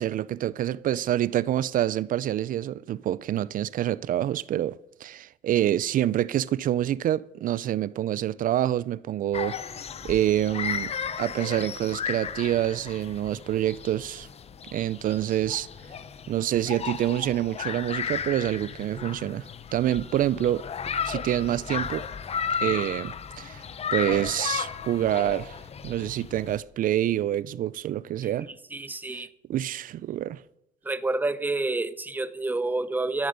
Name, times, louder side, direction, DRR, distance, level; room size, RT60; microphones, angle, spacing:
voice 1, 0.0-9.6 10.0-10.9 11.2-14.3 14.7-15.7 16.3-19.5 19.7-20.6 21.0-22.0 22.6-23.6 23.9-25.6 25.8-28.5 29.1-29.2 29.5-30.4, right 12 dB, 55° right, 0.5 m, -27 dB
sound 1, 9.3-26.6, left 7 dB, 35° left, 0.9 m, -34 dB
voice 2, 28.2-29.3 30.8-33.3, right 2 dB, 10° right, 0.8 m, -29 dB
13.0 x 10.5 x 6.6 m
cardioid pair, 110°, 17 cm